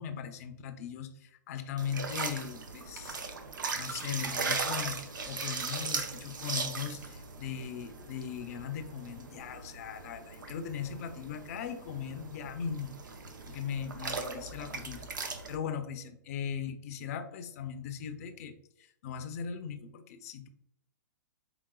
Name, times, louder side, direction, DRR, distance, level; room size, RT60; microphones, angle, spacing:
voice 1, 0.0-3.3 3.7-12.9 13.5-15.1 15.5-20.5, left 7 dB, 50° left, 8 dB, 0.6 m, -39 dB
sound 1, 1.8-15.6, right 4 dB, 90° right, 0.6 m, -38 dB
4.9 x 3.5 x 2.3 m, 0.76 s
hypercardioid pair, 130°, 10 cm